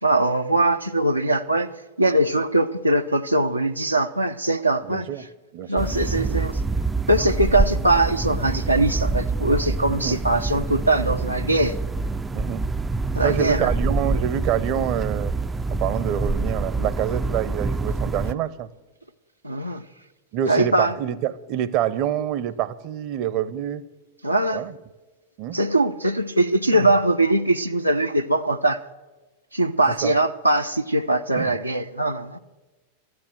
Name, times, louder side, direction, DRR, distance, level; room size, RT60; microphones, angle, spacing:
voice 1, 0.0-1.7 2.0-5.1 5.7-6.6 7.1-11.8 13.1-13.7 19.4-19.8 20.5-20.9 24.2-24.7 25.5-28.8 29.5-32.4, right 1 dB, 85° right, 0.5 m, -21 dB
voice 2, 4.9-5.2 5.5-5.9 9.9-10.2 12.3-12.6 13.2-15.3 15.7-18.7 20.3-23.8 24.5-24.7 25.4-25.6 26.7-26.9 30.0-30.1 31.4-31.5, right 11 dB, 40° right, 0.6 m, -26 dB
sound 1, 5.8-18.3, right 3 dB, 10° right, 0.3 m, -26 dB
13.5 x 9.6 x 7.7 m
figure-of-eight pair, 90°, 0 cm